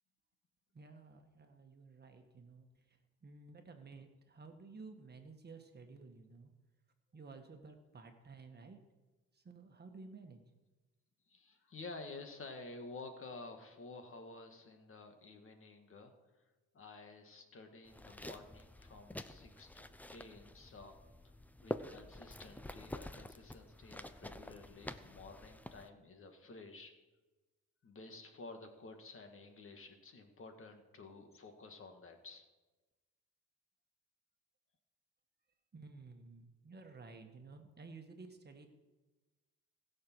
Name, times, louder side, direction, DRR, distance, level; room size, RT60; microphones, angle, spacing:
voice 1, 0.7-6.6 7.1-8.8 9.3-10.4 35.7-38.7, right 4 dB, 35° right, 5 dB, 1.5 m, -54 dB
voice 2, 11.3-16.1 16.7-20.9 21.6-26.9 27.8-32.4, left 3 dB, 45° left, 5 dB, 1.9 m, -52 dB
sound 1, 17.9-25.9, left 1 dB, 5° left, 0.6 m, -48 dB
20.0 x 6.8 x 4.6 m, 1.2 s
cardioid pair, 90°, 30 cm